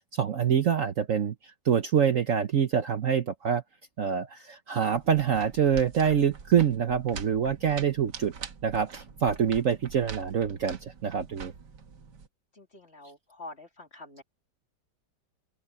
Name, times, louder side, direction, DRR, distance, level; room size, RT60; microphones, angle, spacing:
voice 1, 0.0-3.6 4.0-8.3 8.6-11.5, right 8 dB, 55° right, 1.2 m, -26 dB
sound 1, 4.9-12.3, right 6 dB, 70° right, 2.1 m, -44 dB
voice 2, 12.5-14.2, left 2 dB, 35° left, 3.2 m, -46 dB
open air
omnidirectional pair, 1.9 m